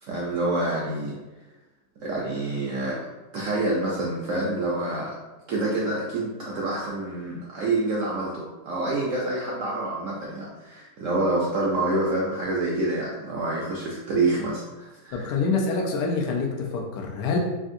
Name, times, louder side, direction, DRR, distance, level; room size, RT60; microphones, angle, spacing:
voice 1, 0.0-1.1 2.0-3.0 3.3-5.2 5.5-15.3, right 2 dB, 75° right, -4 dB, 0.7 m, -27 dB
voice 2, 15.1-17.4, left 4 dB, 80° left, 0 dB, 1.2 m, -26 dB
3.5 x 2.4 x 2.5 m, 1.1 s
omnidirectional pair, 1.8 m